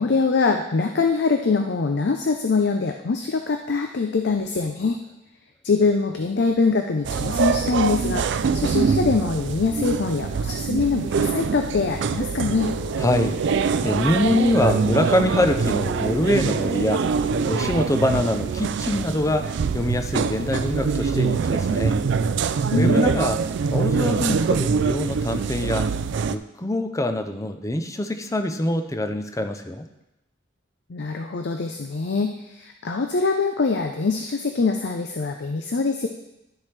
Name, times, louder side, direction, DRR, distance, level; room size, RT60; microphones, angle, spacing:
voice 1, 0.0-5.0 5.6-12.7 22.7-23.0 30.9-36.1, left 4 dB, 60° left, 5 dB, 0.5 m, -23 dB
sound 1, 7.0-26.4, right 5 dB, 60° right, 0.3 m, -24 dB
sound 2, 12.4-17.8, equal, 45° right, 0.7 m, -34 dB
voice 2, 13.0-13.4 13.8-17.1 17.5-22.0 22.7-23.4 23.7-25.9 26.2-29.9, left 1 dB, 15° left, 7 dB, 0.6 m, -24 dB
11.5 x 7.3 x 3.3 m, 0.92 s
head